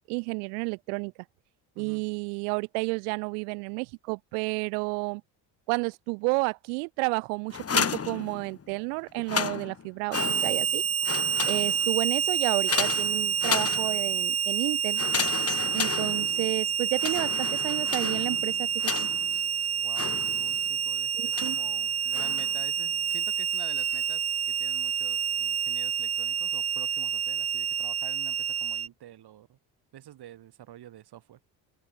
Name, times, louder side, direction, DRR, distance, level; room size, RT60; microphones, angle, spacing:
voice 1, 0.1-1.1 1.8-5.2 5.7-10.8 11.5-15.0 15.7-19.1 21.1-21.6, right 39 dB, 90° right, 1.5 m, -31 dB
sound 1, 7.5-8.7 9.1-10.7 11.0-12.0 12.7-14.2 14.9-16.6 17.0-19.4 19.9-20.7 21.3-21.7 22.1-22.6, left 6 dB, 30° left, 3.0 m, -33 dB
Harmonica, 10.1-28.9, right 7 dB, 30° right, 1.5 m, -28 dB
voice 2, 19.8-29.6 29.9-31.4, right 12 dB, 60° right, 7.5 m, -48 dB
open air
supercardioid pair, 85°, 44 cm